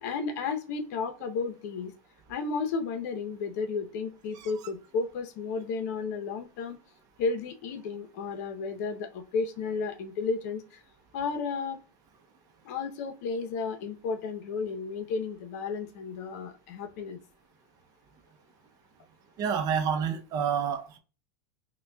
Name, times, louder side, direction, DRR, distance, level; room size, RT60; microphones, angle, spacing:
voice 1, 0.0-1.9 2.3-6.8 7.2-10.8 11.1-11.8 12.6-17.2, left 4 dB, 60° left, 0.7 m, -33 dB
voice 2, 19.4-21.0, right 7 dB, 40° right, 0.6 m, -28 dB
5.5 x 2.3 x 2.2 m
hypercardioid pair, 120°, 10 cm